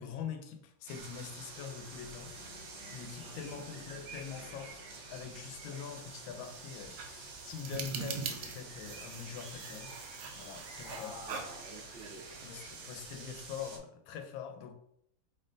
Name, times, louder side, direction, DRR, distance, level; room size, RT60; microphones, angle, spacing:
voice 1, 0.0-2.3 2.9-4.8 5.1-9.9 10.4-11.2 12.4-14.7, left 7 dB, 85° left, 1.4 m, -44 dB
sound 1, 0.9-13.8, right 3 dB, 90° right, 1.5 m, -48 dB
sound 2, 2.3-7.3, left 5 dB, 55° left, 1.1 m, -60 dB
voice 2, 3.6-3.9 5.6-5.8 10.8-12.3, equal, 40° right, 0.8 m, -49 dB
sound 3, 6.0-13.4, right 5 dB, 70° right, 0.9 m, -44 dB
4.4 x 3.2 x 2.5 m
omnidirectional pair, 2.1 m